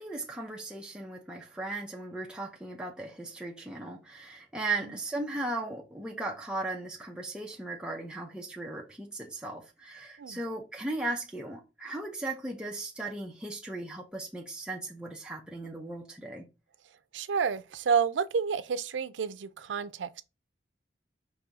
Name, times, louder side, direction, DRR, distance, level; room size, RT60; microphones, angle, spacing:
voice 1, 0.0-16.5, right 2 dB, 5° right, 0.7 m, -37 dB
voice 2, 17.1-20.2, right 6 dB, 85° right, 0.4 m, -30 dB
5.4 x 2.7 x 3.5 m
head